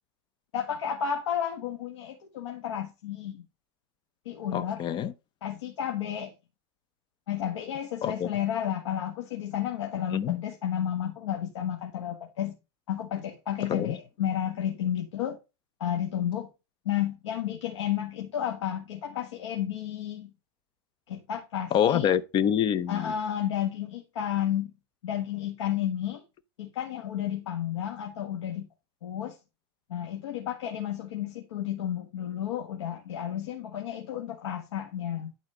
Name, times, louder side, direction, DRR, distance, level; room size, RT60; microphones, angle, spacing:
voice 1, 0.5-3.4 4.3-4.8 5.4-6.3 7.3-12.6 12.9-15.4 15.8-16.5 16.9-20.3 21.1-22.1 22.9-24.7 25.0-26.2 26.6-28.7 29.0-29.4 29.9-35.3, left 10 dB, 85° left, 1.7 m, -32 dB
voice 2, 4.5-5.1 8.0-8.3 10.1-10.4 13.7-14.0 21.7-23.1, left 9 dB, 30° left, 0.8 m, -26 dB
11.5 x 4.2 x 4.9 m
supercardioid pair, 135°, 15 cm